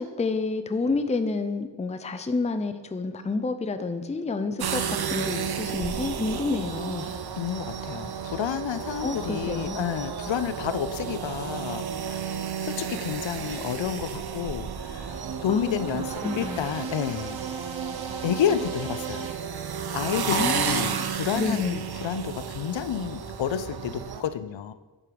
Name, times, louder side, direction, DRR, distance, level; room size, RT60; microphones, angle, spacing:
voice 1, 0.0-7.1 9.0-9.8 15.5-16.7 20.3-21.0 21.4-21.8, left 3 dB, 15° left, 9 dB, 0.4 m, -29 dB
sound 1, 4.6-24.2, right 7 dB, 60° right, 0.6 m, -32 dB
voice 2, 7.0-12.3 12.6-17.6 18.2-19.3 19.9-24.7, left 9 dB, 80° left, 12 dB, 0.5 m, -30 dB
sound 2, 14.5-19.3, right 6 dB, 80° right, 0.9 m, -37 dB
8.7 x 4.9 x 4.6 m, 1.2 s
wide cardioid pair, 100°, 45 cm